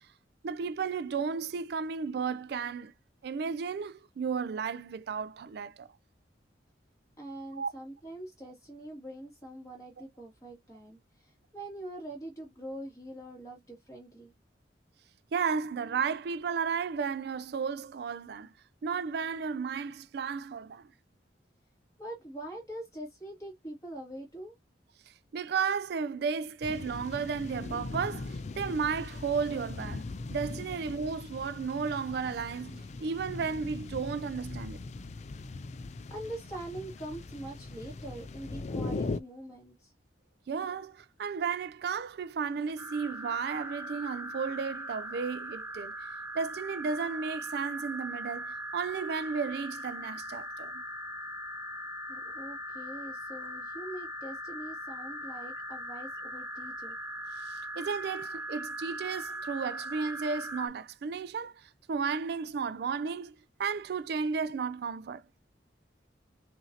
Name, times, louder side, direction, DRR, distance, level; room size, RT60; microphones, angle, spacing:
voice 1, 0.4-2.9 3.2-5.9 7.6-7.7 15.3-18.5 18.8-20.9 25.3-30.0 30.3-34.8 40.5-45.9 46.3-50.8 57.4-65.2, right 5 dB, 60° right, 0.3 m, -33 dB
voice 2, 7.2-14.3 22.0-24.5 36.1-39.9 52.1-57.0, right 1 dB, 20° left, 2.1 m, -43 dB
sound 1, 26.6-39.2, left 3 dB, 40° left, 0.3 m, -40 dB
sound 2, 42.8-60.7, right 1 dB, 10° right, 0.8 m, -40 dB
5.5 x 2.6 x 2.8 m
head